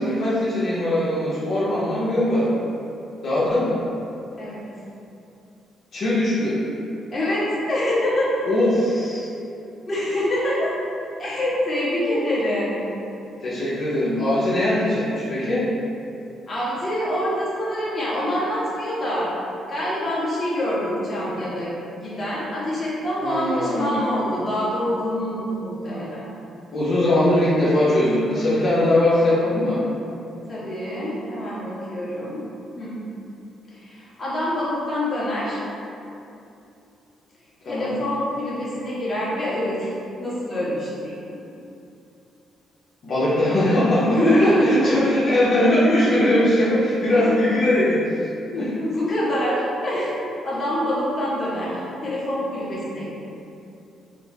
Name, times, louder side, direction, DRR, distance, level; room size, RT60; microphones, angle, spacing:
voice 1, 0.0-2.5 3.2-3.8 5.9-6.6 8.5-9.3 13.4-15.7 23.2-24.0 26.7-29.8 37.6-37.9 43.0-48.0 48.5-48.8, left 1 dB, 60° left, -11 dB, 1.0 m, -20 dB
voice 2, 4.3-4.6 7.1-8.4 9.9-10.7 11.2-12.8 16.5-19.3 19.7-26.2 30.5-32.4 32.7-33.0 33.7-35.6 37.6-39.9 40.2-41.4 44.1-44.9 47.0-47.4 48.8-50.1 50.4-53.1, left 1 dB, 35° left, -9 dB, 1.5 m, -25 dB
4.4 x 2.2 x 4.1 m, 2.7 s
cardioid pair, 90°, 0 cm